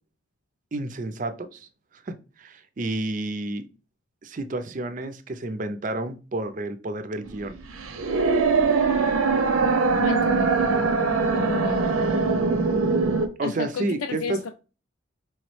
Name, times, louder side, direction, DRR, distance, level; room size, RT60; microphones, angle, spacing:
voice 1, 0.7-1.7 1.9-3.7 4.2-7.6 13.4-14.5, right 2 dB, 40° right, 0.4 m, -30 dB
sound 1, 7.3-13.3, right 4 dB, 85° right, 0.7 m, -22 dB
voice 2, 10.0-10.5 11.3-12.0 13.4-14.5, left 5 dB, 85° left, 0.4 m, -31 dB
4.7 x 3.0 x 3.1 m
head